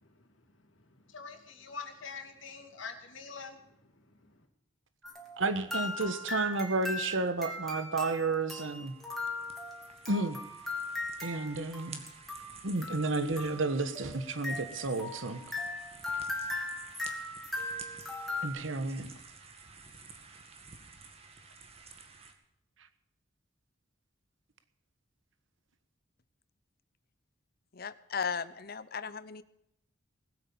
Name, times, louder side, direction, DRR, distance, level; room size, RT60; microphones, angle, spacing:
voice 1, 0.0-4.4, left 5 dB, 80° left, 3 dB, 2.9 m, -46 dB
sound 1, 5.0-18.5, left 2 dB, ahead, 2.9 m, -39 dB
voice 2, 5.4-8.9 10.1-10.4 11.2-12.0 12.6-15.4 18.4-19.1, right 3 dB, 80° right, 10 dB, 1.3 m, -31 dB
sound 2, 8.4-22.3, right 4 dB, 30° right, 2.0 m, -52 dB
voice 3, 27.7-29.4, left 6 dB, 50° left, 15 dB, 0.8 m, -36 dB
20.0 x 8.6 x 7.0 m, 0.81 s
head